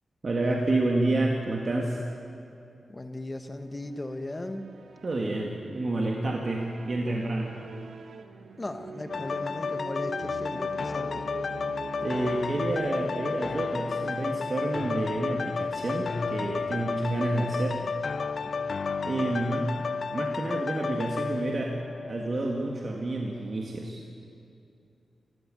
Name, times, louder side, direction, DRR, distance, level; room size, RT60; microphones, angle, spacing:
voice 1, 0.2-2.0 5.0-7.5 12.0-17.8 19.0-19.7 20.1-21.7 22.1-24.0, right 2 dB, 35° right, 0 dB, 1.8 m, -29 dB
voice 2, 2.9-4.7 8.6-11.2 19.3-19.7, left 2 dB, 20° left, 8 dB, 1.3 m, -37 dB
sound 1, 3.6-12.7, right 4 dB, 80° right, 1.4 m, -44 dB
sound 2, 9.1-22.8 23.3-23.4, left 5 dB, 50° left, 0.6 m, -32 dB
26.0 x 15.0 x 9.0 m, 2.7 s
wide cardioid pair, 165°, 0 cm